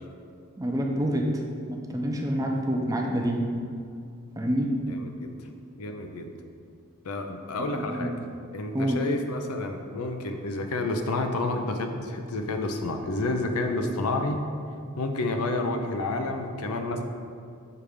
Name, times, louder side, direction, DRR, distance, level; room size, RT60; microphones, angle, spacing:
voice 1, 0.6-1.3 1.7-3.5 4.4-4.7 7.6-8.2 8.7-9.0, right 1 dB, 15° right, 1 dB, 0.5 m, -27 dB
voice 2, 5.8-6.3 7.0-8.1 8.5-14.4 15.0-17.0, left 2 dB, 80° left, 5 dB, 0.6 m, -29 dB
6.7 x 3.4 x 5.0 m, 2.4 s
head